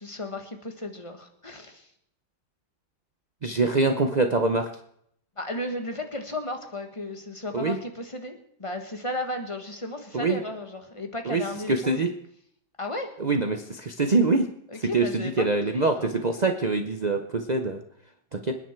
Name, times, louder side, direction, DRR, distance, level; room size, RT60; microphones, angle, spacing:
voice 1, 0.0-1.9 5.4-12.0 12.8-13.1 14.7-15.4 15.7-16.4, left 1 dB, 15° left, 5 dB, 1.4 m, -34 dB
voice 2, 3.4-4.7 7.5-7.8 10.1-10.4 11.3-12.1 13.2-14.5 14.9-17.8 18.3-18.6, right 3 dB, 70° right, 5 dB, 0.4 m, -24 dB
26.5 x 9.9 x 4.5 m, 0.70 s
omnidirectional pair, 2.1 m